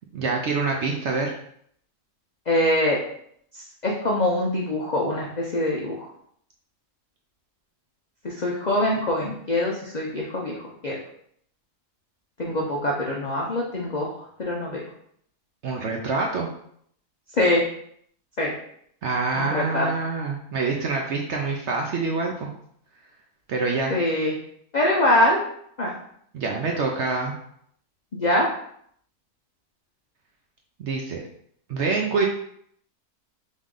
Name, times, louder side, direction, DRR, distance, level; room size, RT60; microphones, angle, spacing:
voice 1, 0.1-1.4 15.6-16.5 19.0-22.5 23.5-24.0 26.3-27.3 30.8-31.2 31.7-32.3, right 4 dB, 65° right, 0 dB, 0.7 m, -26 dB
voice 2, 2.5-3.0 3.8-6.1 8.2-10.6 10.8-11.0 12.4-14.1 14.4-14.8 17.4-17.6 18.4-18.5 19.3-19.9 23.9-24.3 24.7-25.4 25.8-25.9 28.1-28.5, left 1 dB, 60° left, -3 dB, 0.4 m, -23 dB
3.7 x 3.1 x 3.7 m, 0.67 s
omnidirectional pair, 1.6 m